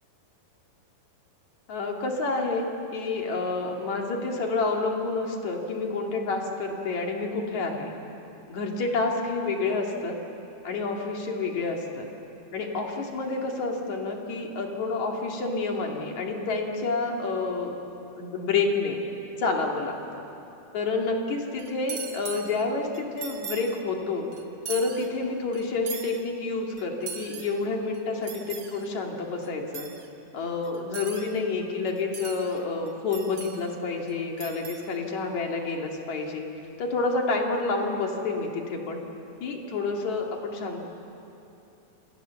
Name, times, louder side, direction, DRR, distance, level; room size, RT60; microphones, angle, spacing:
voice 1, 1.7-7.9 8.5-10.2 10.6-12.1 12.5-17.8 18.2-19.0 19.4-20.2 20.7-24.3 24.7-29.9 30.3-36.5 36.8-39.0 39.4-40.8, left 3 dB, 55° left, 1 dB, 3.5 m, -29 dB
sound 1, 21.6-22.7 22.9-23.8 24.3-25.1 25.5-26.2 26.8-27.6 27.9-28.9 29.4-29.5 29.7-30.1 30.6-31.4 31.9-32.6 32.9-33.7 34.1-34.2 34.4-34.9, right 6 dB, 65° right, 1.0 m, -40 dB
28.0 x 26.5 x 7.1 m, 3.0 s
omnidirectional pair, 4.3 m